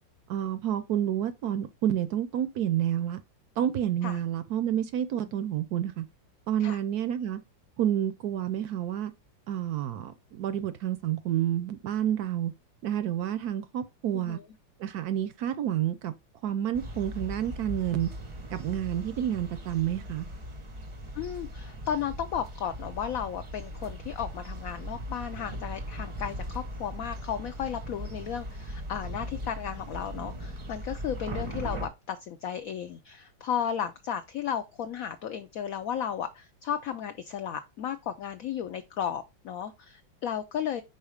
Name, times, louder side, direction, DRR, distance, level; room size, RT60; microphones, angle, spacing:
voice 1, 0.3-3.2 3.6-6.1 6.5-7.4 7.8-9.1 9.5-12.5 12.8-14.4 14.8-16.1 16.4-18.1 18.5-20.3, right 11 dB, 70° right, 0.9 m, -29 dB
sound 1, 16.7-31.9, equal, 45° right, 0.4 m, -39 dB
voice 2, 21.1-40.8, left 8 dB, 80° left, 0.7 m, -34 dB
5.6 x 3.9 x 4.9 m
omnidirectional pair, 2.1 m